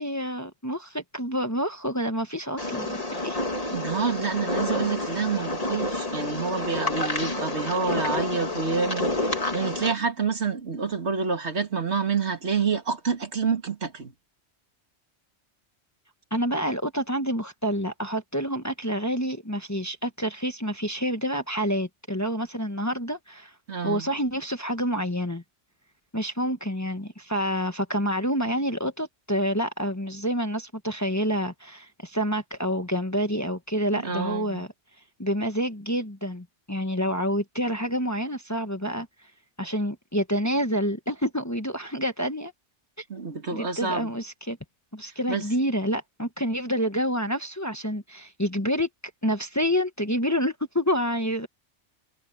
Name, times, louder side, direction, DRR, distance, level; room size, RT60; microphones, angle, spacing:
voice 1, 0.0-3.4 16.3-23.5 23.8-25.4 26.1-34.7 35.2-39.1 39.6-42.5 43.2-44.6 44.9-48.9 49.2-51.5, equal, 15° left, 1.2 m, -28 dB
sound 1, 2.6-9.9, left 2 dB, 30° left, 2.2 m, -29 dB
voice 2, 3.7-14.1 23.7-24.1 33.9-34.6 43.1-44.1 45.3-45.4, right 5 dB, 65° right, 2.3 m, -28 dB
omnidirectional pair, 1.2 m